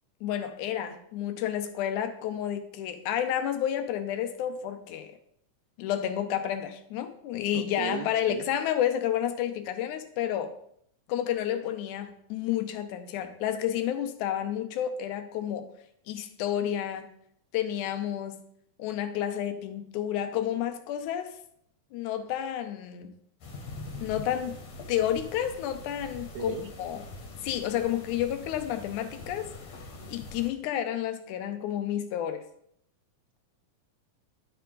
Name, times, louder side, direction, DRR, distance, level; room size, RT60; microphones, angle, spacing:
voice 1, 0.2-5.1 5.8-10.5 11.1-15.7 16.1-17.1 17.5-18.4 18.8-21.4 21.9-23.1 24.0-24.6 24.9-27.0 27.4-29.5 30.1-32.4, left 10 dB, 85° left, 2.1 m, -30 dB
voice 2, 7.5-8.4 26.3-26.7, right 6 dB, 80° right, 2.0 m, -36 dB
sound 1, 23.4-30.5, left 2 dB, 65° left, 2.5 m, -43 dB
11.5 x 4.5 x 3.9 m
omnidirectional pair, 3.4 m